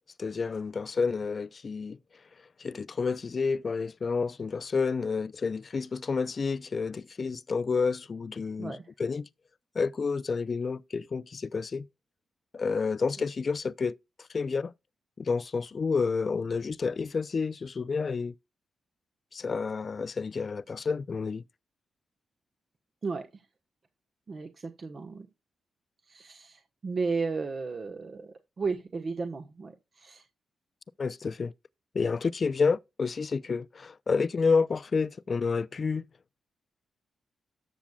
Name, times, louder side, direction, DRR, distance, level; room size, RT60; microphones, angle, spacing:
voice 1, 0.2-2.0 2.6-9.3 9.8-11.9 12.5-13.9 14.3-14.7 15.2-18.3 19.3-21.4 31.0-31.5 31.9-36.0, left 5 dB, 50° left, 0.5 m, -29 dB
voice 2, 8.6-8.9 13.2-13.3 23.0-23.4 24.3-25.3 26.0-30.2, right 4 dB, 50° right, 1.2 m, -34 dB
13.0 x 7.1 x 2.3 m
supercardioid pair, 45°, 0 cm